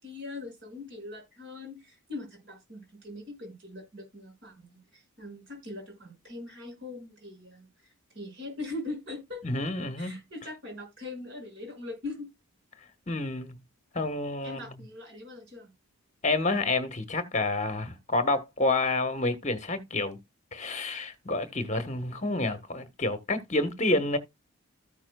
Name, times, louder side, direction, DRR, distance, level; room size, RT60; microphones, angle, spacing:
voice 1, 0.0-7.7 8.1-9.4 10.0-12.3 14.4-15.7, left 2 dB, 55° right, 6.3 m, -41 dB
voice 2, 9.4-10.2 13.1-13.6 13.9-14.8 16.2-20.2 20.5-24.2, left 2 dB, 30° left, 1.3 m, -29 dB
14.0 x 5.9 x 2.3 m
head